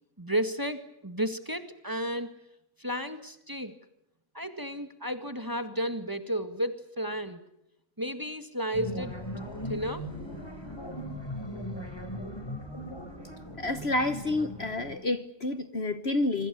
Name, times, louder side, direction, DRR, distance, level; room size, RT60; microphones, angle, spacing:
voice 1, 0.2-2.3 2.8-3.7 4.3-7.4 8.0-9.1 9.7-10.1, equal, 15° right, 1.9 m, -32 dB
sound 1, 8.7-14.9, left 1 dB, 15° left, 5.2 m, -38 dB
voice 2, 13.6-16.5, left 2 dB, 45° left, 1.3 m, -29 dB
27.0 x 25.0 x 7.0 m
omnidirectional pair, 1.6 m